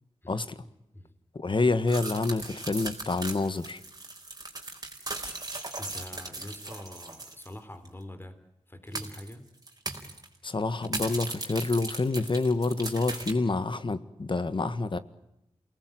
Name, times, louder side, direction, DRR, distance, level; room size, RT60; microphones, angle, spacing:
voice 1, 0.3-0.6 1.3-3.8 10.4-15.0, left 3 dB, 50° left, 13 dB, 1.7 m, -28 dB
sound 1, 1.9-7.5 7.8-7.9 8.9-9.3 9.7-10.3 10.8-13.3, right 2 dB, 35° right, 4.6 m, -38 dB
voice 2, 5.8-8.4 8.7-9.5, left 1 dB, 20° left, 9 dB, 3.6 m, -44 dB
28.5 x 19.0 x 9.1 m, 0.86 s
wide cardioid pair, 80°, 11 cm